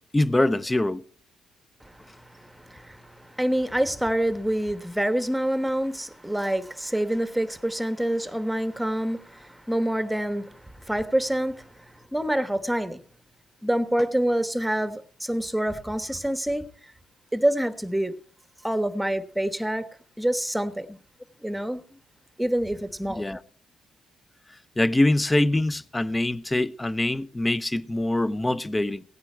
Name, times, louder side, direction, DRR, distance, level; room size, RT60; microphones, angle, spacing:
voice 1, 0.1-1.0 23.1-23.4 24.8-29.0, left 1 dB, 15° left, 0.7 m, -24 dB
voice 2, 1.8-13.0 13.6-16.7 17.3-18.2 18.6-19.9 20.2-21.0 21.4-21.8 22.4-23.2, right 1 dB, 5° right, 1.2 m, -27 dB
17.0 x 9.5 x 4.6 m
cardioid pair, 90°, 0 cm